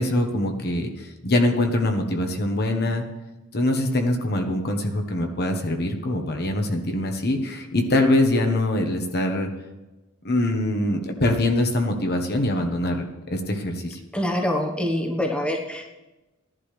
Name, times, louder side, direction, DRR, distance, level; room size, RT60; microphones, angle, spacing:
voice 1, 0.0-3.0 3.5-9.5 10.2-14.0, left 1 dB, 50° left, 4 dB, 1.3 m, -23 dB
voice 2, 14.1-15.9, left 1 dB, 5° left, 0 dB, 1.2 m, -25 dB
15.5 x 11.0 x 3.3 m, 1.1 s
head